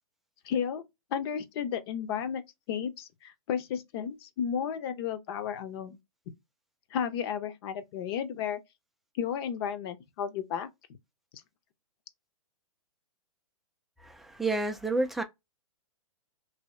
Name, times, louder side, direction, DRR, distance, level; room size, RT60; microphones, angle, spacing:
voice 1, 0.4-0.9 1.1-2.4 2.7-6.0 6.9-8.6 9.1-10.7, left 8 dB, 45° left, 0.6 m, -33 dB
voice 2, 14.0-15.2, right 2 dB, ahead, 0.3 m, -30 dB
3.0 x 2.8 x 3.0 m
hypercardioid pair, 135°, 18 cm